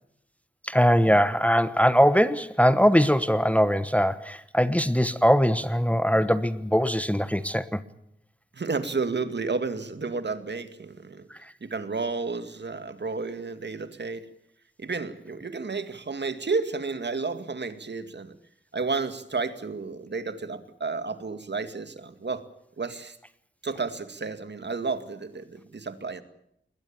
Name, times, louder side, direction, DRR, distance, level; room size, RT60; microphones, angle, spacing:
voice 1, 0.6-7.8, equal, 5° left, 13 dB, 1.1 m, -21 dB
voice 2, 8.5-11.3 11.6-14.3 14.8-18.3 18.7-22.4 22.8-23.2 23.6-26.2, right 4 dB, 60° right, 10 dB, 2.1 m, -31 dB
21.0 x 20.5 x 8.9 m, 0.74 s
cardioid pair, 55°, 21 cm